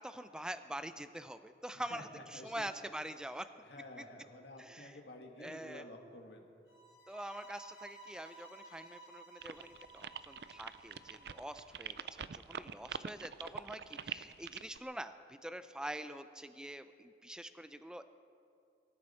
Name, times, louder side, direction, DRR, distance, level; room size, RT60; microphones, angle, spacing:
voice 1, 0.0-3.5 4.0-4.1 4.6-5.0 5.4-5.9 7.1-18.0, right 1 dB, 5° right, 10 dB, 0.4 m, -45 dB
voice 2, 1.9-2.7 3.7-6.5, left 1 dB, 80° left, 2 dB, 2.0 m, -51 dB
sound 1, 6.7-11.7, right 2 dB, 65° left, 2.9 m, -56 dB
sound 2, 9.4-14.8, right 7 dB, 70° right, 0.5 m, -44 dB
24.0 x 13.5 x 4.4 m, 2.5 s
head